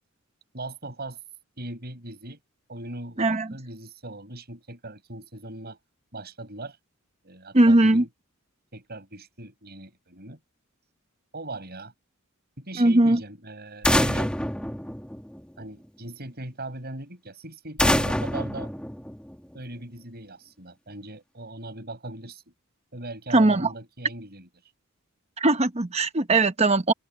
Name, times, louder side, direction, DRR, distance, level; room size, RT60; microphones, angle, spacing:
voice 1, 0.5-1.2 1.6-2.4 2.7-5.8 6.1-6.8 7.2-8.1 8.7-10.4 11.3-11.9 12.6-14.3 15.6-18.7 19.5-22.5 22.9-24.5, right 2 dB, 45° right, 7.8 m, -39 dB
voice 2, 7.5-8.0 12.8-13.2 23.3-23.7 25.4-26.9, right 2 dB, 30° right, 1.1 m, -19 dB
sound 1, 13.8-15.6 17.8-19.6, left 1 dB, 5° left, 2.6 m, -26 dB
head